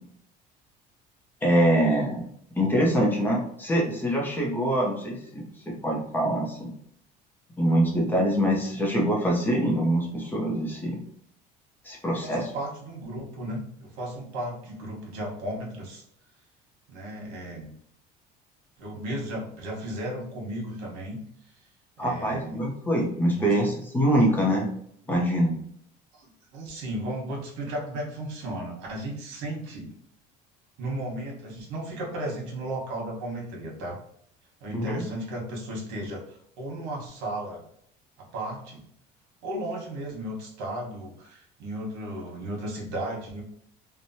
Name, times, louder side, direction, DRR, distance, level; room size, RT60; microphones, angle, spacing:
voice 1, 1.4-2.2 2.6-6.7 7.6-11.0 11.8-12.5 22.0-24.7 25.1-25.5 34.7-35.0, equal, 10° left, -2 dB, 0.6 m, -24 dB
voice 2, 12.2-16.0 16.9-17.7 18.8-21.5 22.0-22.6 23.3-23.5 26.2-29.9 30.8-34.0 34.6-37.6 38.2-38.8 39.4-43.4, right 1 dB, 90° right, -1 dB, 1.2 m, -35 dB
3.0 x 2.2 x 2.7 m, 0.67 s
cardioid pair, 160°, 17 cm